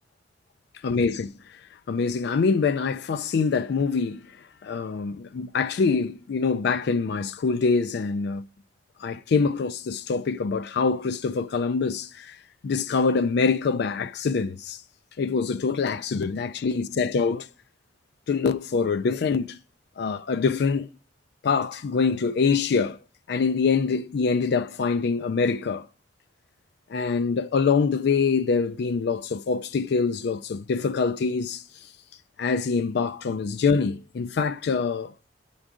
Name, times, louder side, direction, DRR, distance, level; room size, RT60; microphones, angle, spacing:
voice 1, 0.8-1.3 1.9-4.2 4.6-8.4 9.0-12.4 12.6-14.8 15.2-17.5 18.3-19.6 20.0-20.9 21.4-23.0 23.3-25.9 26.9-31.6 32.4-35.1, left 5 dB, 60° left, 0.4 m, -24 dB
11.5 x 3.9 x 4.8 m
head